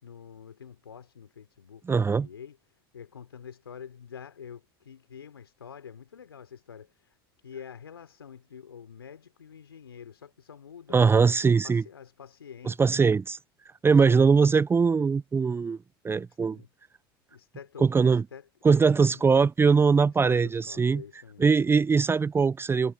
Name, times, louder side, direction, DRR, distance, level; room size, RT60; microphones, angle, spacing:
voice 1, 0.0-7.2 7.4-11.0 11.4-13.0 13.9-14.2 16.3-16.7 17.3-19.4 20.0-21.7, left 7 dB, 85° left, 4.2 m, -47 dB
voice 2, 1.9-2.3 10.9-11.8 12.7-13.4 13.8-15.8 16.0-16.6 17.8-18.2 18.6-21.0 21.4-22.9, right 5 dB, 20° right, 0.6 m, -21 dB
hypercardioid pair, 80°, 13 cm